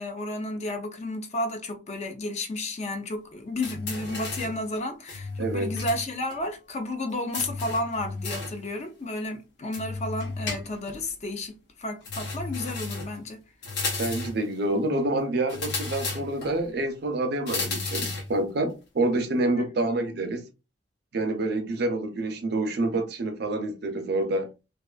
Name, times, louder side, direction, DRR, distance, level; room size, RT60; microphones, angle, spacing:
voice 1, 0.0-13.4 19.6-19.9, left 1 dB, 40° left, 0.5 m, -32 dB
sound 1, 3.6-4.6 5.1-6.0 6.3-6.4 7.3-8.6 9.7-11.0 12.0-13.2 13.6-14.4 15.5-16.5 17.5-18.3, left 3 dB, 65° left, 0.9 m, -33 dB
voice 2, 5.4-5.7 14.0-20.4 21.1-24.5, right 2 dB, 60° right, 0.5 m, -27 dB
2.4 x 2.3 x 2.2 m
head